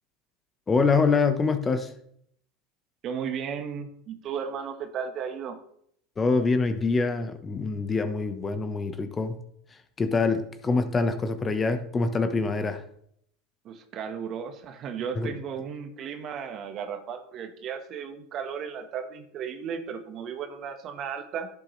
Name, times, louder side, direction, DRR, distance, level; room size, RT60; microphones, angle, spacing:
voice 1, 0.7-1.9 6.2-9.4 10.0-12.8 15.1-15.3, left 4 dB, 25° left, 8 dB, 1.1 m, -25 dB
voice 2, 3.0-5.6 13.6-21.5, right 7 dB, 45° right, 7 dB, 1.3 m, -35 dB
11.0 x 7.5 x 3.3 m, 0.68 s
supercardioid pair, 105°, 0 cm